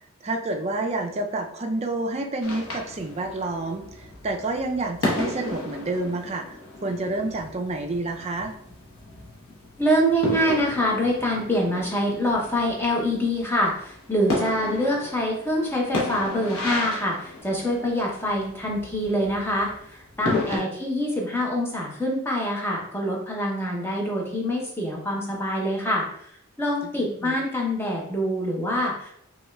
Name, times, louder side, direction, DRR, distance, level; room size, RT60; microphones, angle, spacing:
voice 1, 0.2-6.5 6.8-8.5 20.5-20.7 27.0-27.3, right 2 dB, 30° right, 3 dB, 0.4 m, -29 dB
sound 1, 2.4-20.6, left 2 dB, 85° left, 0.9 m, -34 dB
voice 2, 9.8-26.0 26.6-29.1, equal, 10° left, -1 dB, 0.6 m, -25 dB
5.0 x 2.3 x 2.2 m, 0.70 s
head